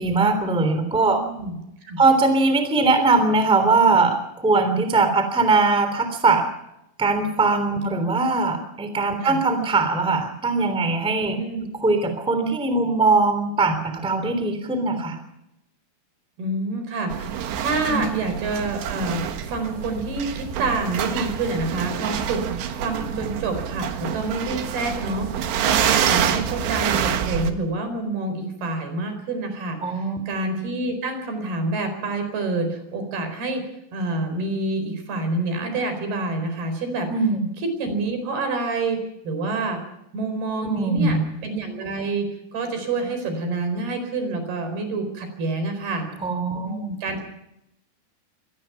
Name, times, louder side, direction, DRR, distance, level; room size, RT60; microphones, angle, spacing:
voice 1, 0.0-1.2 2.0-6.5 7.0-11.4 11.8-15.2 17.9-18.0 22.4-22.5 29.8-30.2 37.1-37.4 40.6-41.2 46.2-46.9, right 3 dB, ahead, 8 dB, 2.4 m, -21 dB
voice 2, 1.1-2.0 9.2-9.4 11.3-11.7 16.4-33.7 33.9-37.1 37.6-39.0 39.2-39.8 40.1-41.2 41.4-46.1 46.6-47.3, right 3 dB, 65° right, 7 dB, 6.3 m, -27 dB
sound 1, 17.1-27.5, right 9 dB, 80° right, 3.7 m, -26 dB
25.0 x 18.0 x 5.9 m, 0.83 s
omnidirectional pair, 5.0 m